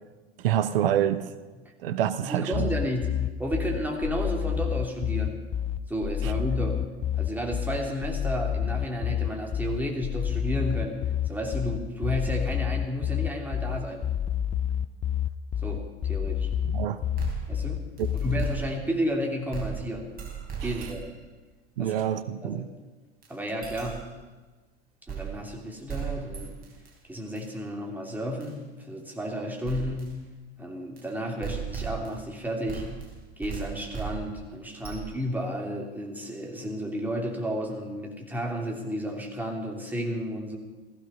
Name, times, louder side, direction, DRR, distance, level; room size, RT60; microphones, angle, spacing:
voice 1, 0.4-1.3 1.8-2.7 16.7-17.0 18.0-18.1 21.8-22.7, right 10 dB, 60° right, 14 dB, 0.7 m, -26 dB
voice 2, 2.2-5.4 5.9-6.9 7.1-14.0 15.6-16.5 17.5-17.8 18.1-20.2 20.6-21.1 21.8-22.0 22.4-22.7 23.3-24.0 25.0-26.6 27.1-30.2 30.6-32.9 33.4-40.6, equal, 5° right, 0 dB, 2.7 m, -32 dB
sound 1, 2.5-18.5, left 9 dB, 20° left, 0.5 m, -29 dB
sound 2, 17.2-19.1 19.5-21.3 23.2-23.3 23.6-24.2 25.1-25.6 25.9-26.9 27.4-27.5 28.4-28.5 29.7-30.2 31.0-31.1 31.4-32.4 32.7-35.4, right 8 dB, 30° right, 3.7 m, -37 dB
15.5 x 15.0 x 5.5 m, 1.2 s
figure-of-eight pair, 75°, 32 cm